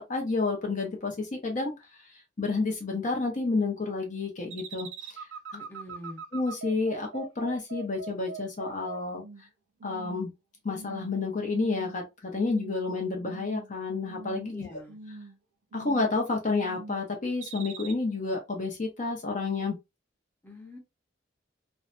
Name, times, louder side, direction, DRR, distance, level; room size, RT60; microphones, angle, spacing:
voice 1, 0.1-1.7 2.4-4.9 6.3-9.2 9.8-10.3 10.6-14.7 15.7-19.8, left 3 dB, 45° left, 0.7 m, -30 dB
sound 1, 4.5-9.5 9.8-10.3 10.7-11.2 11.5-12.0 12.3-12.9 13.2-13.7 14.0-14.6 14.9-15.4 15.7-16.2 16.6-17.0 17.4-17.9, right 4 dB, 85° right, 0.4 m, -42 dB
voice 2, 5.5-6.2 14.5-15.0 20.4-20.8, left 1 dB, 10° left, 0.8 m, -44 dB
2.6 x 2.1 x 2.5 m
head